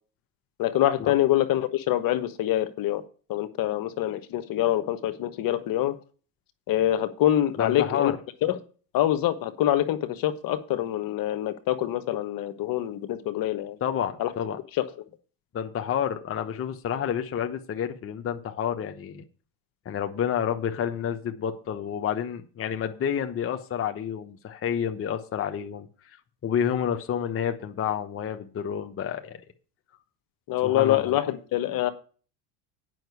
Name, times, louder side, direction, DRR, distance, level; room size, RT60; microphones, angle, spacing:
voice 1, 0.6-3.0 3.3-5.9 6.7-8.1 8.4-8.6 8.9-13.8 14.2-14.3 14.8-14.9 30.5-31.9, left 13 dB, 45° left, 11 dB, 1.3 m, -25 dB
voice 2, 7.6-8.2 13.8-14.6 15.5-19.2 19.8-25.9 26.4-29.4 30.6-31.1, left 8 dB, 30° left, 5 dB, 1.1 m, -29 dB
9.2 x 5.8 x 8.1 m, 0.39 s
supercardioid pair, 100°, 45 cm